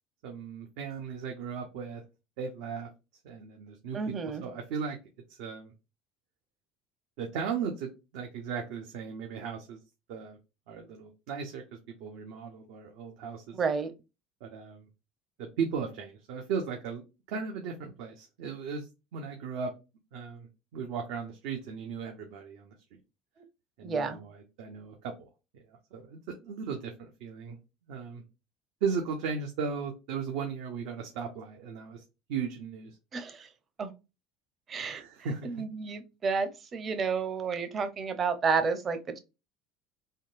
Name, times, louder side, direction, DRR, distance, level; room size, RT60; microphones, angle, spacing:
voice 1, 0.2-2.0 2.4-2.9 3.2-4.0 4.2-5.0 5.4-5.7 7.2-9.8 10.1-10.4 10.7-11.6 12.0-13.6 14.4-14.8 15.4-17.0 17.3-18.9 19.1-19.7 20.1-20.5 20.7-22.7 23.8-25.3 25.9-27.6 27.9-28.2 28.8-32.0 32.3-32.9 34.9-35.6, right 6 dB, 75° right, 0.7 m, -36 dB
voice 2, 3.9-4.4 13.5-13.9 23.8-24.2 33.1-33.5 33.8-33.9 34.7-35.0 35.4-39.2, right 5 dB, 35° right, 0.6 m, -31 dB
3.6 x 2.2 x 2.5 m
supercardioid pair, 105°, 0 cm